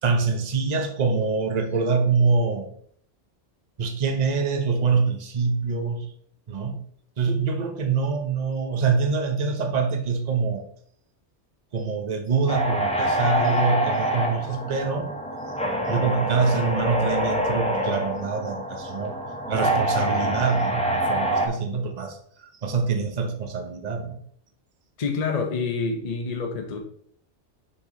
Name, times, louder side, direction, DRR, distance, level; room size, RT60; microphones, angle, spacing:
voice 1, 0.0-2.7 3.8-6.1 6.5-6.8 7.2-10.6 11.7-15.1 15.9-19.2 19.5-24.2, right 4 dB, 40° right, 5 dB, 0.9 m, -25 dB
sound 1, 12.5-21.5, right 1 dB, 5° left, 0.9 m, -26 dB
voice 2, 25.0-26.8, left 4 dB, 40° left, 3 dB, 0.8 m, -27 dB
6.8 x 4.6 x 3.8 m, 0.63 s
omnidirectional pair, 1.2 m